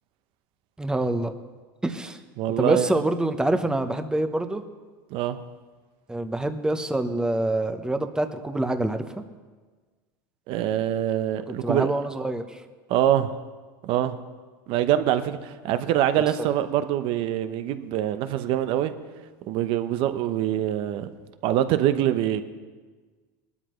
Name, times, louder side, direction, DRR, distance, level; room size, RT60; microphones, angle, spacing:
voice 1, 0.8-1.3 1.8-2.2 2.6-4.6 6.1-9.2 11.5-12.6 16.4-16.5, right 1 dB, 5° right, 0.9 m, -26 dB
voice 2, 2.4-2.9 5.1-5.4 10.5-11.9 12.9-13.3 13.8-14.1 14.7-18.9 19.5-21.1 21.4-22.4, right 11 dB, 55° right, 0.9 m, -24 dB
19.5 x 12.5 x 3.2 m
supercardioid pair, 115°, 11 cm